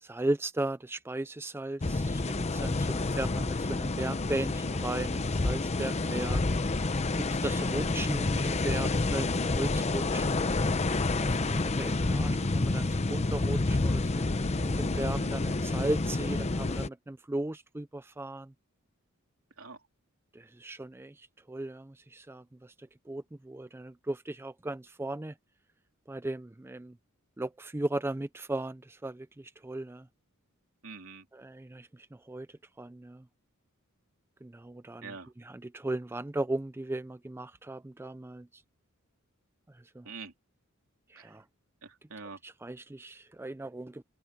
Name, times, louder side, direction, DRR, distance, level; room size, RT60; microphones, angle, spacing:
voice 1, 0.0-6.4 7.2-10.5 11.4-14.1 14.5-18.5 20.3-22.7 23.1-25.3 26.1-27.0 27.4-30.1 31.3-32.5 32.8-33.2 34.4-38.5 39.9-40.1 41.1-41.4 42.4-44.0, right 2 dB, 10° right, 0.4 m, -37 dB
sound 1, 1.8-16.9, left 2 dB, 30° left, 0.7 m, -29 dB
voice 2, 14.9-15.3 19.6-19.8 30.8-31.3 35.0-35.3 40.1-40.3 41.2-41.4 41.8-42.4, right 4 dB, 75° right, 3.6 m, -45 dB
open air
head